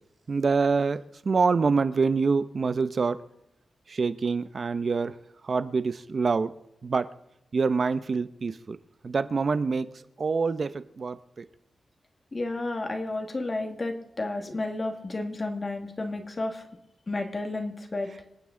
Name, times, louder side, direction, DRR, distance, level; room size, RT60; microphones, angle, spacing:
voice 1, 0.3-3.2 3.9-5.1 5.4-6.5 6.8-7.1 7.5-8.8 9.0-9.9 10.2-11.4, right 4 dB, 40° right, 0.8 m, -26 dB
voice 2, 12.3-16.6 17.1-18.1, left 2 dB, 25° left, 1.9 m, -32 dB
27.0 x 9.3 x 3.9 m
wide cardioid pair, 160°, 0 cm